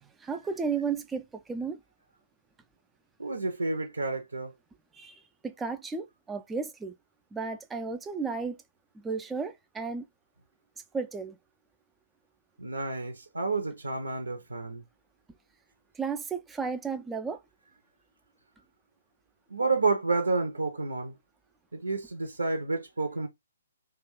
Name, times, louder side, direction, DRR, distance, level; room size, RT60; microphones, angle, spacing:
voice 1, 0.2-1.8 5.0-5.1 5.4-6.9 7.3-8.6 9.0-10.0 10.9-11.4 16.0-17.4, right 5 dB, 10° right, 0.3 m, -33 dB
voice 2, 3.2-4.5 12.6-14.8 19.5-21.2 21.7-23.3, right 3 dB, 75° right, 0.6 m, -30 dB
2.4 x 2.2 x 3.5 m
figure-of-eight pair, 130°, 0 cm